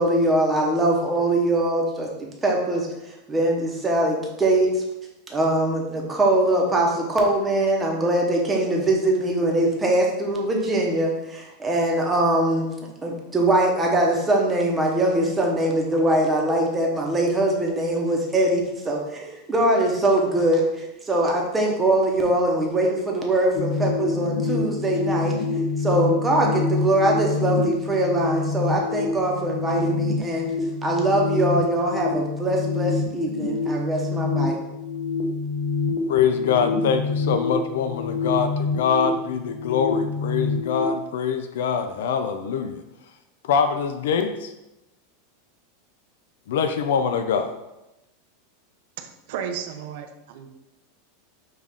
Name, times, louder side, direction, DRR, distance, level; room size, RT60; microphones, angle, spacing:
voice 1, 0.0-2.1 2.4-2.9 3.3-4.8 5.3-12.7 13.0-25.4 25.8-30.5 30.8-34.6, right 1 dB, 15° right, -1 dB, 0.8 m, -22 dB
sound 1, 23.5-40.8, left 4 dB, 65° left, 0.7 m, -26 dB
voice 2, 36.1-42.8 43.4-44.5 46.5-47.5, left 7 dB, 80° left, 8 dB, 0.4 m, -24 dB
voice 3, 49.0-50.5, right 7 dB, 60° right, 6 dB, 0.4 m, -34 dB
5.5 x 2.4 x 3.5 m, 0.94 s
supercardioid pair, 150°, 0 cm